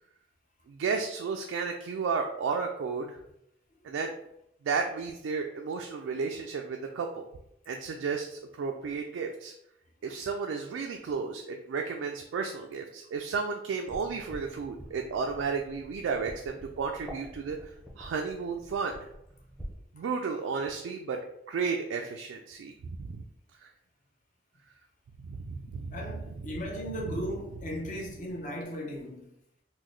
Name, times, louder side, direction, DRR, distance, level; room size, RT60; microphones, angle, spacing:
voice 1, 0.7-3.2 3.8-4.1 4.6-7.2 7.7-9.5 10.0-17.6 18.0-19.1 19.9-21.2 21.5-23.2 23.6-23.7 25.2-26.0 26.3-26.4, right 5 dB, 85° right, 0.3 m, -33 dB
sound 1, 13.9-19.7, equal, ahead, 0.6 m, -47 dB
voice 2, 25.9-29.3, equal, 40° left, 0.7 m, -37 dB
3.7 x 2.2 x 3.1 m
head